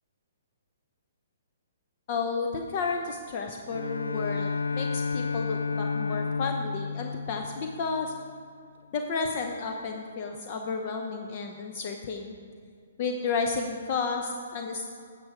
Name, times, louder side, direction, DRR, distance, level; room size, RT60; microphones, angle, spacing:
voice 1, 2.1-8.1 8.9-12.4 13.0-14.9, left 4 dB, 45° left, 3 dB, 0.8 m, -32 dB
Bowed string instrument, 3.7-8.3, left 4 dB, 85° left, 0.3 m, -31 dB
9.2 x 7.6 x 4.9 m, 2.3 s
figure-of-eight pair, 125°, 0 cm